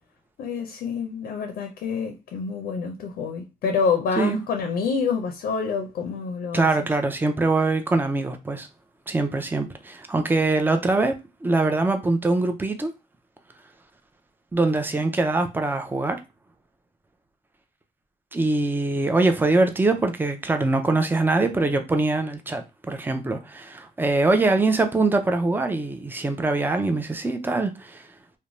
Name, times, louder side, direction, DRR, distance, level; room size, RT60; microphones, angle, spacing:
voice 1, 0.4-6.9, left 5 dB, 85° left, 0.5 m, -27 dB
voice 2, 6.5-8.7 9.1-11.1 11.4-12.9 14.5-16.2 18.3-28.0, right 3 dB, 15° right, 0.5 m, -23 dB
2.5 x 2.1 x 3.0 m
cardioid pair, 80°, 15 cm